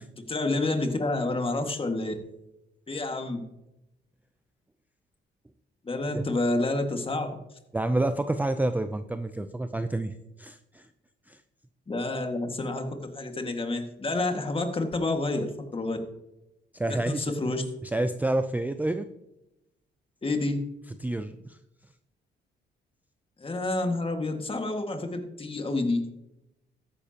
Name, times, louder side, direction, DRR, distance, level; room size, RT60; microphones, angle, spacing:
voice 1, 0.2-2.1 2.9-3.4 5.8-7.4 11.9-16.0 16.9-17.6 20.2-20.6 23.4-26.0, left 2 dB, 25° left, 5 dB, 1.8 m, -29 dB
voice 2, 7.7-10.9 11.3-11.4 16.7-17.5 17.8-19.1 21.0-21.6, right 2 dB, 10° right, 9 dB, 0.5 m, -29 dB
13.5 x 10.0 x 2.9 m, 0.90 s
cardioid pair, 90°, 20 cm